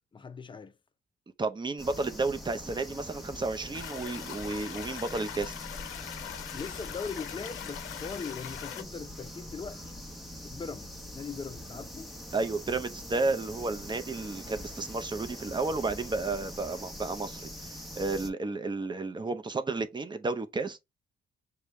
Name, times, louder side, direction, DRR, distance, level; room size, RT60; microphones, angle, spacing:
voice 1, 0.1-0.7 6.5-10.0 10.4-12.1, left 5 dB, 25° left, 0.5 m, -40 dB
voice 2, 1.4-5.5 12.3-20.8, right 3 dB, 25° right, 0.7 m, -32 dB
sound 1, 1.8-18.3, left 1 dB, ahead, 1.0 m, -43 dB
sound 2, 3.7-8.8, left 11 dB, 90° left, 0.5 m, -41 dB
6.6 x 2.3 x 3.1 m
cardioid pair, 90°, 20 cm